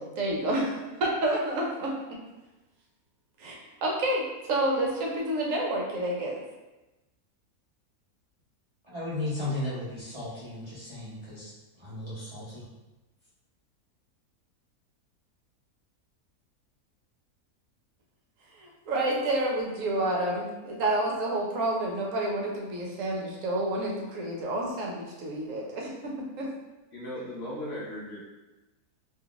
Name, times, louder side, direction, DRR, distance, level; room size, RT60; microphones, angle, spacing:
voice 1, 0.0-2.2 3.4-6.4 18.5-26.5, right 1 dB, 65° right, -2 dB, 0.9 m, -29 dB
voice 2, 8.8-11.5 11.8-12.7, left 2 dB, 50° right, -10 dB, 0.3 m, -35 dB
voice 3, 26.9-28.2, left 1 dB, 60° left, -6 dB, 0.8 m, -37 dB
2.7 x 2.3 x 3.7 m, 1.1 s
omnidirectional pair, 1.6 m